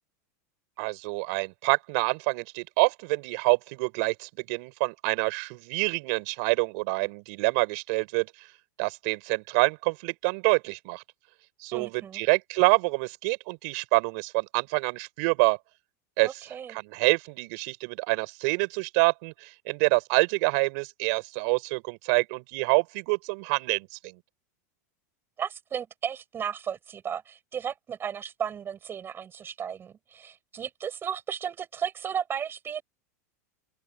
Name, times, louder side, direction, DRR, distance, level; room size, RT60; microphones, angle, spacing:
voice 1, 0.8-8.3 8.8-11.0 11.6-15.6 16.2-24.2, right 32 dB, 60° right, 6.3 m, -26 dB
voice 2, 11.7-12.2 16.2-16.8 25.4-32.8, right 8 dB, 25° right, 6.7 m, -34 dB
open air
supercardioid pair, 135°, 9 cm